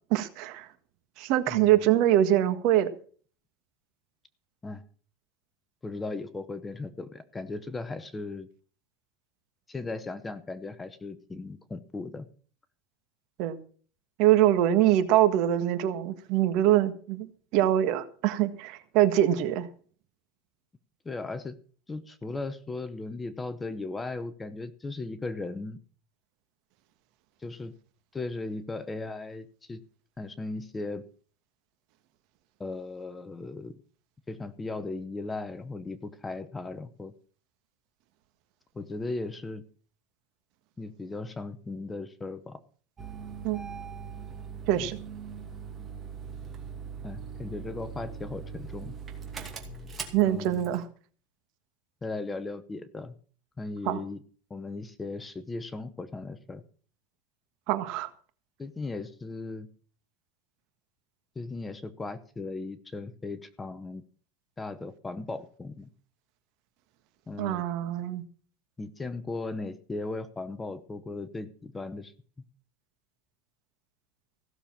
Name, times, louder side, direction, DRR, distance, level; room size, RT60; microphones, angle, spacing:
voice 1, 0.1-0.7 1.2-2.9 13.4-13.6 14.2-17.3 17.5-19.7 43.4-43.7 44.7-45.0 50.1-50.8 53.8-54.0 57.7-58.1 67.4-68.2, right 12 dB, 50° right, 1.5 m, -24 dB
voice 2, 1.5-1.8 4.6-4.8 5.8-8.5 9.7-12.3 21.0-21.5 21.9-25.8 27.4-27.7 28.1-29.8 30.2-31.0 32.6-33.7 34.3-37.1 38.7-39.6 40.8-42.6 44.8-44.9 47.0-48.9 50.2-50.7 52.0-53.1 53.6-54.2 54.5-56.6 58.6-59.7 61.4-64.0 64.6-65.9 67.3-67.6 68.8-72.1, left 3 dB, 10° left, 0.8 m, -37 dB
Engine starting, 43.0-50.8, right 6 dB, 20° right, 2.4 m, -41 dB
16.0 x 6.9 x 7.2 m
supercardioid pair, 155°, 0 cm